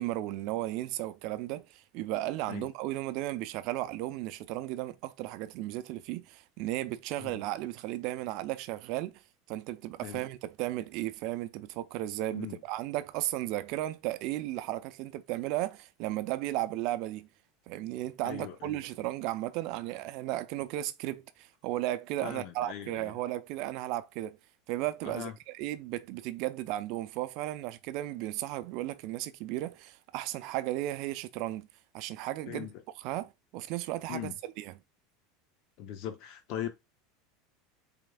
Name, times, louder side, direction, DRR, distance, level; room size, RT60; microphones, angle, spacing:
voice 1, 0.0-9.2 9.5-17.3 17.7-24.4 24.7-31.7 31.9-32.7 33.0-34.7, right 15 dB, 60° right, 0.4 m, -35 dB
voice 2, 18.2-18.8 22.2-23.1 25.0-25.4 32.5-32.8 34.1-34.3 35.8-36.7, left 10 dB, 60° left, 0.7 m, -40 dB
4.7 x 3.4 x 2.3 m
hypercardioid pair, 95°, 0 cm